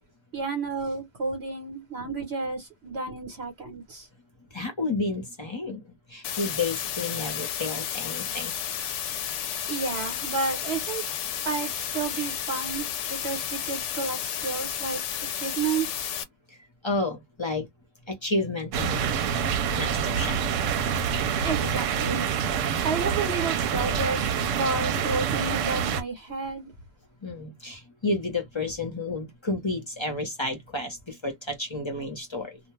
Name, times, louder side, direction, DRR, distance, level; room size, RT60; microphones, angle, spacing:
voice 1, 0.3-4.1 9.7-11.0 11.4-15.0 15.3-16.1 21.4-22.2 22.8-26.7, right 4 dB, 60° right, 1.1 m, -31 dB
voice 2, 4.5-8.5 16.5-16.6 16.8-17.7 18.1-19.4 19.7-20.4 27.2-32.6, left 2 dB, 25° left, 0.7 m, -31 dB
sound 1, 6.2-16.2, left 9 dB, 75° left, 0.9 m, -32 dB
sound 2, 18.7-26.0, right 7 dB, 80° right, 0.9 m, -26 dB
2.3 x 2.3 x 3.0 m
omnidirectional pair, 1.3 m